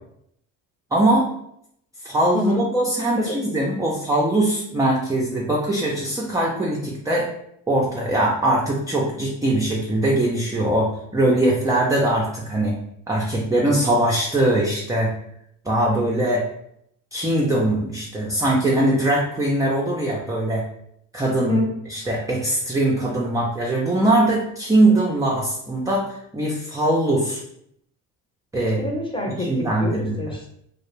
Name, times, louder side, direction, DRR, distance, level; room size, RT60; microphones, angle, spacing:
voice 1, 0.9-1.3 2.0-7.3 7.7-12.8 13.1-15.1 15.7-16.4 17.1-20.6 21.1-21.6 21.9-27.4 28.5-28.9 29.4-30.2, right 1 dB, 10° right, -3 dB, 0.4 m, -21 dB
voice 2, 28.6-30.5, left 1 dB, 15° left, 0 dB, 0.7 m, -26 dB
2.4 x 2.0 x 3.0 m, 0.72 s
supercardioid pair, 80°, 39 cm